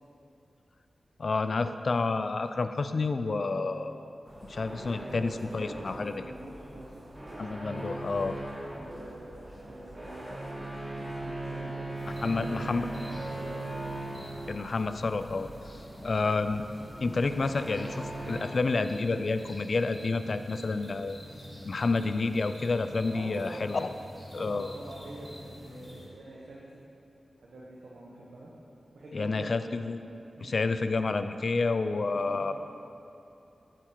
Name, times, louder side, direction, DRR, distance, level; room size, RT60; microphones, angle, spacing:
voice 1, 1.2-3.9 4.5-6.1 7.4-8.4 12.2-12.9 14.5-15.5 16.0-16.6 17.0-21.2 21.6-23.9 24.3-24.7 29.1-30.0 30.4-32.5, left 3 dB, 60° left, 10 dB, 0.3 m, -29 dB
voice 2, 3.3-3.8 4.9-7.1 8.7-11.9 12.2-12.7 13.1-14.0 23.1-23.7 24.3-26.8 27.4-28.5 28.9-29.6 30.3-30.6 32.1-32.5, right 1 dB, 90° right, -6 dB, 1.0 m, -45 dB
sound 1, 4.3-18.4, right 2 dB, 30° right, 1.3 m, -40 dB
sound 2, 11.9-26.1, equal, 10° left, 1.9 m, -47 dB
9.0 x 4.9 x 4.5 m, 2.8 s
cardioid pair, 65°, 0 cm